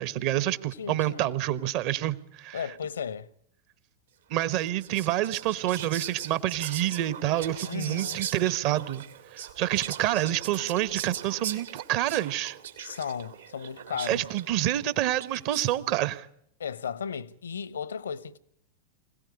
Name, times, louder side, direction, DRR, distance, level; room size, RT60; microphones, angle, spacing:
voice 1, 0.0-2.6 4.3-9.0 9.3-12.6 14.1-16.3, right 13 dB, 45° right, 1.2 m, -28 dB
voice 2, 0.8-1.3 2.5-3.3 7.6-8.2 12.8-14.3 16.6-18.4, left 7 dB, 70° left, 0.9 m, -35 dB
Whispering, 4.5-15.8, right 9 dB, 65° right, 2.0 m, -40 dB
25.5 x 17.5 x 9.6 m
figure-of-eight pair, 90°, 0 cm